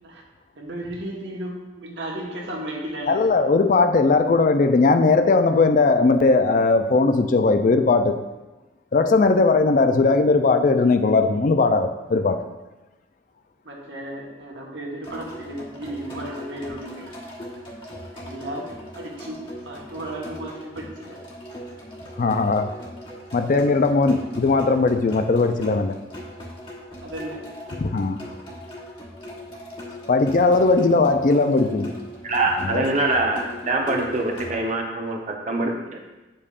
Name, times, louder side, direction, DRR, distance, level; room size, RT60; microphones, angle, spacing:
voice 1, 0.5-3.2 13.6-17.1 18.1-18.7 18.9-21.2 27.0-27.5, right 1 dB, 90° right, -2 dB, 1.3 m, -34 dB
voice 2, 3.1-8.2 8.9-12.4 22.2-22.7 23.3-26.0 27.8-28.2 30.1-31.9 32.6-32.8, left 3 dB, 45° left, 8 dB, 0.4 m, -18 dB
sound 1, 15.0-34.5, left 1 dB, 30° left, 1.2 m, -39 dB
voice 3, 32.2-36.0, right 2 dB, 40° right, 1 dB, 0.8 m, -24 dB
8.1 x 5.3 x 2.5 m, 1.1 s
head